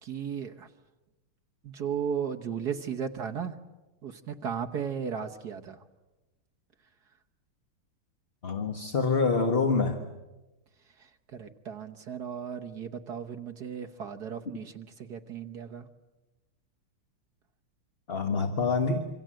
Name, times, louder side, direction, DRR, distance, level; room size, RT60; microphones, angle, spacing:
voice 1, 0.0-0.7 1.6-3.6 4.0-5.8 11.0-15.9, right 7 dB, 55° right, 4 dB, 1.4 m, -35 dB
voice 2, 8.4-10.0 18.1-19.1, left 4 dB, 30° left, 5 dB, 1.4 m, -26 dB
27.0 x 25.5 x 7.7 m, 1.1 s
omnidirectional pair, 2.4 m